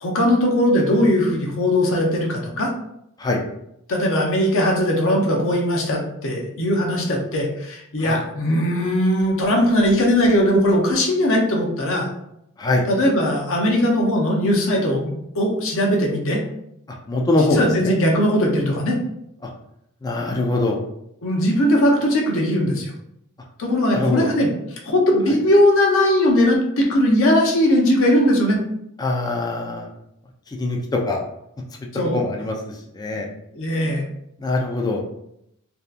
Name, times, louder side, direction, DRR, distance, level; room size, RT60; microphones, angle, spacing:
voice 1, 0.0-2.7 3.9-12.1 12.9-16.4 17.4-18.9 21.2-22.9 23.6-24.5 24.8-28.6 31.9-32.2 33.5-34.1, left 1 dB, 65° left, 0 dB, 0.6 m, -19 dB
voice 2, 17.1-17.9 19.4-19.5 20.0-20.8 23.9-24.3 29.0-29.9 30.6-31.2 32.0-32.6 32.9-33.3 34.4-35.0, left 2 dB, 20° left, 0 dB, 0.3 m, -22 dB
2.7 x 2.2 x 2.4 m, 0.78 s
head